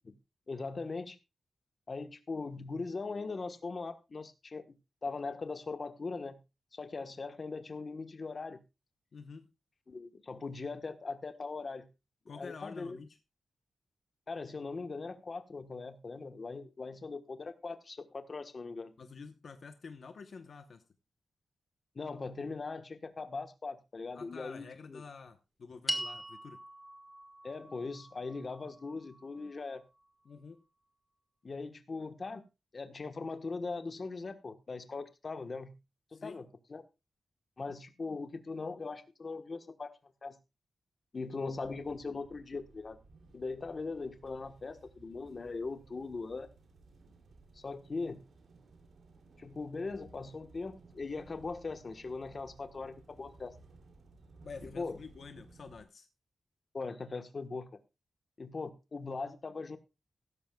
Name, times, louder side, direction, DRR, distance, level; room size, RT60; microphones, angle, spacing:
voice 1, 0.5-1.2 1.9-4.8 5.0-6.4 6.7-8.6 9.9-11.9 12.3-13.0 14.3-18.9 21.9-25.0 27.4-29.8 31.4-32.4 32.7-35.8 36.1-36.8 37.6-39.9 40.2-40.4 41.1-43.0 43.3-46.5 47.5-48.2 49.4-53.5 54.6-55.0 56.7-57.7 58.4-59.8, left 4 dB, 40° left, 9 dB, 1.2 m, -40 dB
voice 2, 9.1-9.5 12.3-13.2 19.0-20.8 24.1-26.6 30.2-30.6 36.1-36.4 54.4-56.1, left 5 dB, 55° left, 8 dB, 0.9 m, -48 dB
sound 1, 25.9-30.3, right 1 dB, 10° right, 1.5 m, -42 dB
sound 2, 41.5-55.8, right 3 dB, 70° right, 2.7 m, -58 dB
15.5 x 13.0 x 2.3 m, 0.26 s
wide cardioid pair, 135°, 0 cm